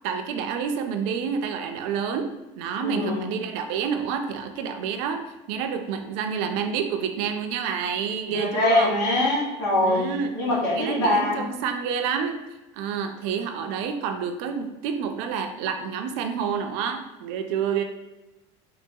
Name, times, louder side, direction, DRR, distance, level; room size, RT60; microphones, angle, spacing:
voice 1, 0.0-2.3 2.6-5.2 5.5-9.0 9.8-10.4 10.7-12.4 12.7-17.8, right 7 dB, 70° right, 6 dB, 0.4 m, -28 dB
voice 2, 2.8-3.2 8.3-10.0 10.3-11.4, left 1 dB, 90° left, -6 dB, 1.4 m, -23 dB
3.7 x 2.2 x 2.7 m, 1.1 s
cardioid pair, 160°, 15 cm